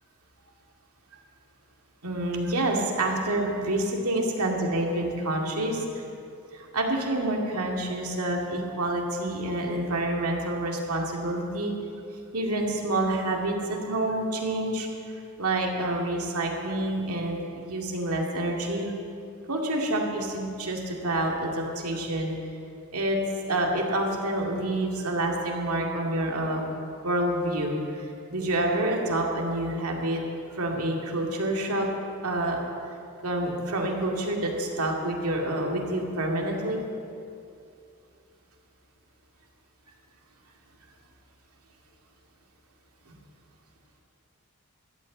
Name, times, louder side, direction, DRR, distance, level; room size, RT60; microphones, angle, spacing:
voice 1, 2.0-6.0 6.5-11.7 12.3-14.9 15.4-18.9 19.5-22.3 22.9-23.2 23.5-26.6 27.0-28.1 28.3-30.2 30.5-31.9 32.2-32.6 33.2-36.8 43.1-43.2, right 1 dB, 75° right, 0 dB, 2.3 m, -28 dB
13.5 x 8.8 x 8.4 m, 2.5 s
head